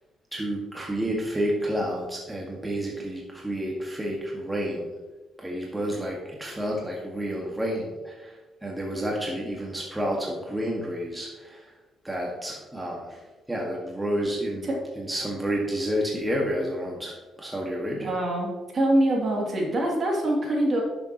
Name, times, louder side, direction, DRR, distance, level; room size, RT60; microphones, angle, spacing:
voice 1, 0.3-4.9 5.4-11.7 12.0-13.2 13.5-18.1, equal, 10° right, -2 dB, 1.6 m, -30 dB
voice 2, 17.9-20.8, right 1 dB, 45° right, -2 dB, 2.6 m, -24 dB
10.5 x 6.9 x 3.0 m, 1.2 s
cardioid pair, 90°, 0 cm